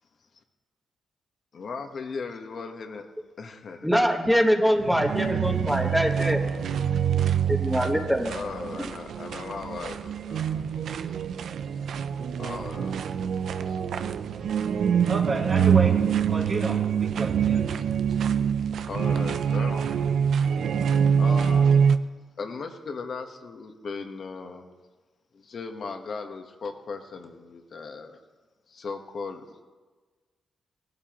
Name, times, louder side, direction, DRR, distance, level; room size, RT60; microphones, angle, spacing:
voice 1, 1.5-3.1 3.4-4.0 8.2-10.7 12.4-13.0 13.5-14.0 17.7-17.8 18.1-18.2 18.9-19.9 20.6-20.7 21.1-21.9 22.4-24.7 25.3-28.2 28.7-29.4, left 4 dB, 60° left, 5 dB, 1.4 m, -37 dB
voice 2, 3.8-6.4 7.5-8.3, equal, ahead, 2 dB, 1.3 m, -23 dB
sound 1, 4.8-22.0, right 7 dB, 80° right, 0.5 m, -25 dB
voice 3, 15.1-16.0 16.3-17.6, right 3 dB, 60° right, -5 dB, 2.8 m, -30 dB
18.5 x 12.0 x 3.1 m, 1.3 s
cardioid pair, 75°, 0 cm